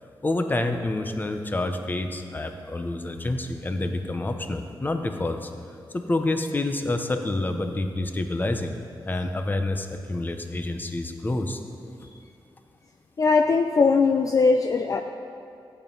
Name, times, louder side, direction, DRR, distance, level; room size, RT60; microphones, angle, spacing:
voice 1, 0.2-5.5 5.9-8.7 9.1-11.6, left 2 dB, 20° left, 6 dB, 0.8 m, -28 dB
voice 2, 13.2-15.0, left 4 dB, 40° left, 5 dB, 0.5 m, -20 dB
15.0 x 9.0 x 5.3 m, 2.5 s
wide cardioid pair, 150°, 9 cm